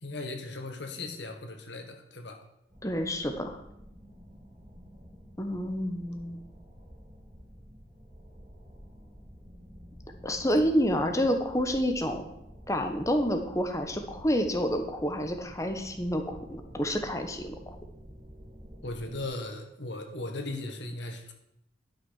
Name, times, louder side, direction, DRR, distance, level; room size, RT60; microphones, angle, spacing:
voice 1, 0.0-2.4 18.8-21.3, left 2 dB, 75° left, 4 dB, 1.6 m, -37 dB
sound 1, 2.7-19.3, equal, 25° right, 3.1 m, -50 dB
voice 2, 2.8-3.6 5.4-6.4 10.2-12.2 12.7-17.8, equal, 15° left, 5 dB, 1.1 m, -29 dB
12.0 x 6.2 x 6.4 m, 0.79 s
head